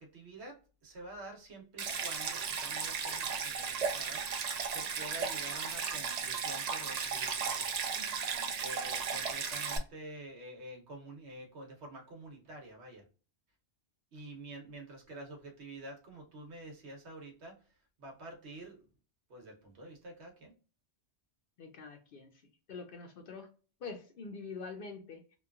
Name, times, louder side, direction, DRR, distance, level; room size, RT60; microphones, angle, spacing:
voice 1, 0.0-7.7 8.6-13.0 14.1-17.6 18.0-18.8 19.3-20.5, right 1 dB, 75° right, 1.1 m, -48 dB
Stream, 1.8-9.8, right 6 dB, 55° right, 0.4 m, -35 dB
voice 2, 21.6-22.3 22.7-23.5 23.8-25.2, left 4 dB, 60° left, 0.7 m, -45 dB
2.9 x 2.3 x 2.3 m
omnidirectional pair, 1.1 m